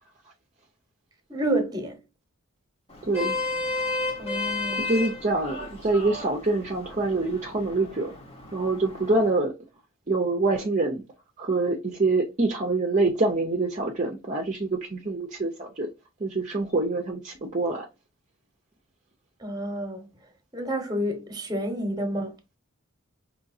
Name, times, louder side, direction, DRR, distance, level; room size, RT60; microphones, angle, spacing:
voice 1, 1.3-1.9 4.2-4.9 19.4-20.0 20.5-22.3, right 1 dB, 20° right, 1.0 m, -29 dB
Vehicle horn car horn honking, 2.9-9.3, left 3 dB, 30° left, 0.9 m, -33 dB
voice 2, 3.0-3.4 4.8-8.1 8.5-9.5 10.1-11.0 11.4-15.9 16.2-17.9, right 2 dB, 35° right, 0.6 m, -25 dB
5.1 x 3.0 x 2.6 m
head